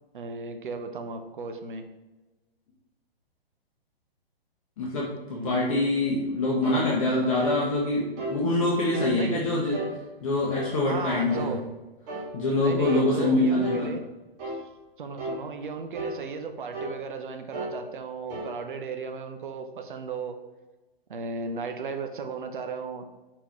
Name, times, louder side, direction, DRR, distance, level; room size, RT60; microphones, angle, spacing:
voice 1, 0.1-1.8 5.3-5.8 9.1-9.4 10.8-11.6 12.6-14.0 14.5-14.7 15.0-20.4 21.1-23.1, right 4 dB, 55° right, 6 dB, 0.6 m, -35 dB
voice 2, 4.8-9.8 10.2-11.5 12.3-13.9, left 2 dB, 35° left, -4 dB, 0.8 m, -25 dB
sound 1, 6.6-6.9 7.4-7.6 8.2-8.4 8.9-9.2 9.7-9.9 10.5-10.7 11.3-11.5 12.1-12.3 12.8-13.1 13.6-13.9 14.4-14.6 15.2-15.4 15.9-16.2 16.7-17.0 17.5-17.8 18.3-18.5, right 1 dB, 20° right, 0.8 m, -33 dB
4.3 x 3.7 x 2.9 m, 1.1 s
figure-of-eight pair, 120°, 30 cm